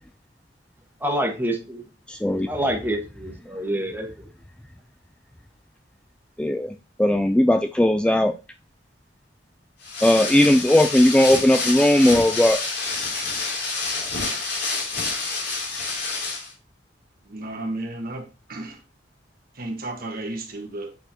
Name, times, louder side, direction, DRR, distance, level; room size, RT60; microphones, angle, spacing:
voice 1, 1.0-1.8 2.5-4.3, equal, 10° right, 1.4 m, -27 dB
voice 2, 2.1-2.5 6.4-8.3 10.0-12.6, left 1 dB, 5° left, 0.3 m, -18 dB
sound 1, 9.8-16.5, left 3 dB, 65° left, 3.0 m, -28 dB
voice 3, 17.2-18.8 19.5-21.0, right 2 dB, 55° right, 1.5 m, -33 dB
7.9 x 4.5 x 2.9 m
head